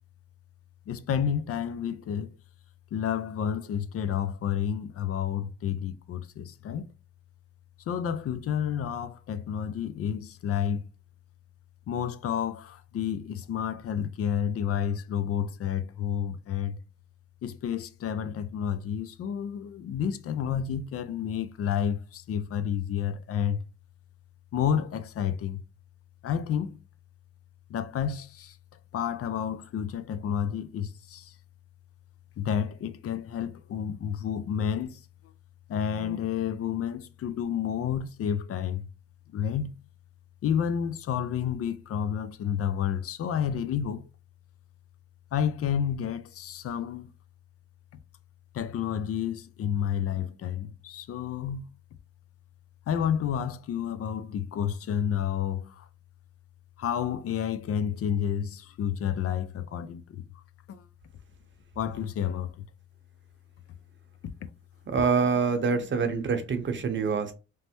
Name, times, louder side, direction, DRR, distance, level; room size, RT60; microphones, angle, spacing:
voice 1, 0.9-2.3 2.9-6.9 7.9-10.9 11.9-16.8 17.4-23.6 24.5-25.6 26.2-26.8 27.7-28.6 28.9-31.3 32.4-35.0 35.7-38.9 39.3-39.7 40.4-44.0 45.3-47.1 48.5-51.7 52.9-55.9 56.8-60.2 60.7-60.8 61.8-62.7 64.4-64.5 67.0-67.1, left 8 dB, 50° left, 0.4 m, -30 dB
voice 2, 64.9-67.3, right 5 dB, 40° right, 0.7 m, -26 dB
3.2 x 2.1 x 2.9 m
cardioid pair, 90°, 30 cm